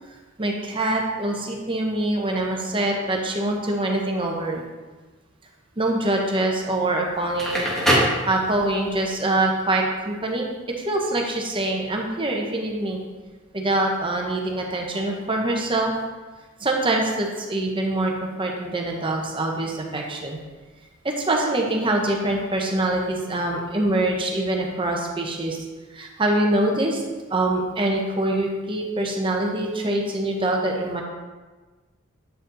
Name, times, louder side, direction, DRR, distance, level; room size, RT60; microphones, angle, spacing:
voice 1, 0.4-4.6 5.8-7.7 8.3-10.5 10.8-13.0 13.5-15.9 16.6-20.4 21.0-25.6 25.9-27.0 27.3-31.0, right 1 dB, 25° right, 0 dB, 0.9 m, -24 dB
Crackle, 7.2-8.9, equal, ahead, 1.5 m, -23 dB
7.9 x 5.0 x 3.9 m, 1.3 s
head